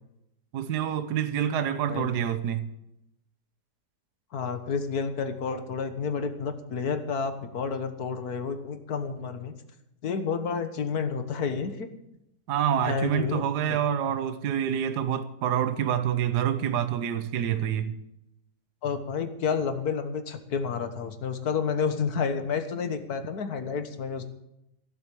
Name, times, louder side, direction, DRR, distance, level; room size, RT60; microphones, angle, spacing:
voice 1, 0.5-2.6 12.5-17.9, right 9 dB, 75° right, 1.5 m, -27 dB
voice 2, 4.3-9.5 10.0-11.9 12.9-13.4 18.8-24.2, left 5 dB, 65° left, 1.9 m, -30 dB
17.0 x 7.7 x 8.5 m
omnidirectional pair, 1.8 m